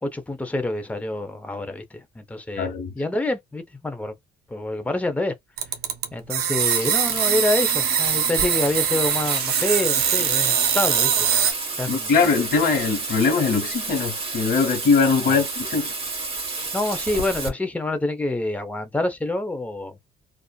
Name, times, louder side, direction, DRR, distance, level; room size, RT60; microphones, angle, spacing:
voice 1, 0.0-2.7 2.9-4.1 4.5-5.3 6.1-11.1 11.8-12.1 15.3-15.4 16.7-20.0, left 2 dB, 10° left, 0.6 m, -27 dB
voice 2, 2.6-2.9 11.9-15.9, left 5 dB, 55° left, 1.1 m, -21 dB
sound 1, 5.6-11.5, right 8 dB, 70° right, 0.6 m, -22 dB
Bathtub (filling or washing), 6.6-17.5, right 3 dB, 35° right, 1.2 m, -30 dB
2.5 x 2.4 x 2.2 m
cardioid pair, 110°, 17 cm